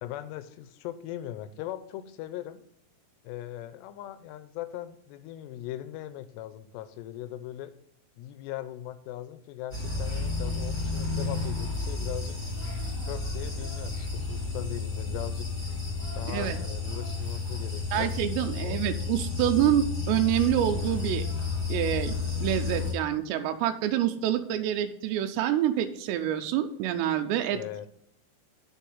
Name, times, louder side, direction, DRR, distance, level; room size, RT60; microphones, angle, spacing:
voice 1, 0.0-2.6 3.2-7.7 8.2-12.4 13.0-15.5 16.2-18.1 18.6-18.8 27.5-27.9, left 13 dB, 90° left, 13 dB, 2.8 m, -39 dB
sound 1, 9.7-22.9, left 4 dB, 10° left, 2.2 m, -32 dB
voice 2, 16.3-16.6 17.9-21.3 21.7-27.6, right 11 dB, 90° right, 7 dB, 2.8 m, -27 dB
9.1 x 4.8 x 5.4 m, 0.70 s
omnidirectional pair, 4.9 m